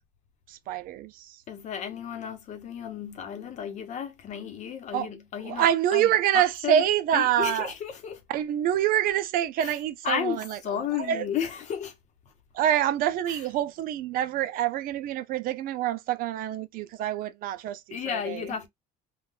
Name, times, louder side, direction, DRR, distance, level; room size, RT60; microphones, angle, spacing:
voice 1, 0.5-1.4 4.9-5.1 5.4-7.7 8.3-11.2 12.5-18.5, right 11 dB, 55° right, 0.4 m, -26 dB
voice 2, 1.5-6.8 7.1-8.2 9.6-9.7 10.0-11.9 13.3-13.4 17.9-18.7, left 8 dB, 45° left, 0.8 m, -33 dB
3.7 x 2.2 x 2.3 m
cardioid pair, 155°, 17 cm